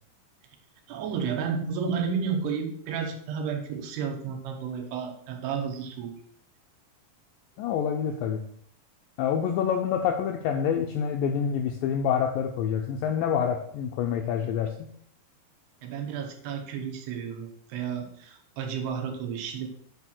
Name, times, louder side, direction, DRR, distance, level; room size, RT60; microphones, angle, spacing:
voice 1, 0.9-6.1 15.8-19.7, right 6 dB, 85° right, 4 dB, 3.1 m, -32 dB
voice 2, 7.6-8.4 9.2-14.9, left 8 dB, 90° left, 3 dB, 2.0 m, -27 dB
8.1 x 3.8 x 6.0 m, 0.64 s
omnidirectional pair, 4.6 m